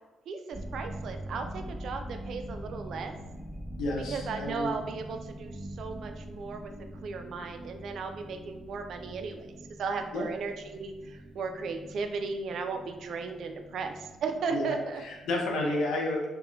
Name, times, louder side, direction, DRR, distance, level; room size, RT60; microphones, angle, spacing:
voice 1, 0.3-3.1 4.1-6.7 7.0-15.0 15.6-15.7, right 4 dB, 65° right, 6 dB, 0.3 m, -36 dB
sound 1, 0.5-15.7, right 1 dB, 10° right, 1.1 m, -43 dB
voice 2, 3.8-4.7 10.1-10.2 14.5-14.7 15.0-16.3, left 2 dB, 80° left, -1 dB, 0.6 m, -30 dB
2.9 x 2.2 x 2.6 m, 1.2 s
cardioid pair, 90°, 0 cm